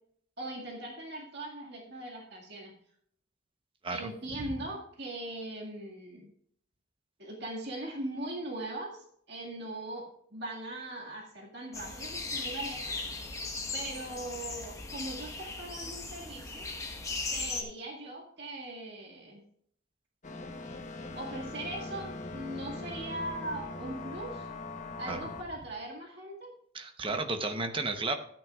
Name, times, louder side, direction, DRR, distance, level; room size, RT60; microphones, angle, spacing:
voice 1, 0.4-2.7 3.9-6.3 7.2-12.8 13.7-16.7 17.3-19.4 21.1-24.5 25.0-26.5, right 1 dB, 55° right, -2 dB, 2.1 m, -40 dB
sound 1, 11.7-17.6, left 3 dB, 15° left, 1.1 m, -38 dB
sound 2, 20.2-25.4, left 2 dB, 35° left, 1.1 m, -41 dB
voice 2, 26.7-28.1, right 3 dB, 25° right, 6 dB, 0.9 m, -32 dB
13.5 x 9.3 x 2.4 m, 0.66 s
head